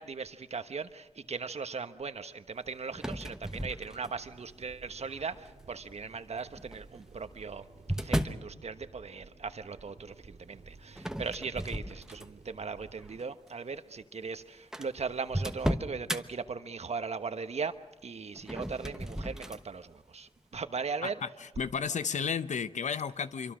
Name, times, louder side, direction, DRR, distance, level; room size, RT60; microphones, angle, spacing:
voice 1, 0.0-7.6 8.0-17.7 18.0-21.2, right 5 dB, 65° right, 10 dB, 1.2 m, -38 dB
sound 1, 2.9-4.4 5.0-5.5 6.6-8.5 11.0-12.5 13.0-13.2 14.0-14.1 14.3-14.4 14.7-16.2 18.3-19.6, equal, 5° right, 1.2 m, -35 dB
sound 2, 3.5-13.2, right 4 dB, 80° right, 2.8 m, -55 dB
voice 2, 21.0-23.5, left 6 dB, 85° left, 12 dB, 0.8 m, -33 dB
25.5 x 23.5 x 6.3 m, 1.1 s
cardioid pair, 60°, 12 cm